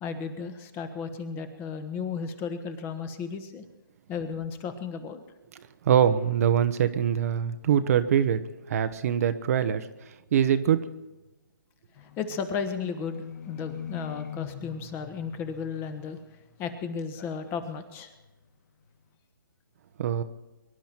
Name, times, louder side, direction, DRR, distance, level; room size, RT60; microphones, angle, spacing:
voice 1, 0.0-3.6 4.1-5.2 12.0-16.2 16.6-18.1, left 6 dB, 20° left, 9 dB, 1.3 m, -34 dB
voice 2, 5.8-8.4 8.7-9.9 10.3-10.9 20.0-20.2, right 9 dB, 40° right, 10 dB, 0.9 m, -23 dB
Livestock farm animals working animals, 11.9-16.7 17.0-17.7 18.1-18.3, left 7 dB, 45° left, 2.6 m, -42 dB
24.5 x 11.5 x 4.5 m, 1.0 s
hypercardioid pair, 150°, 12 cm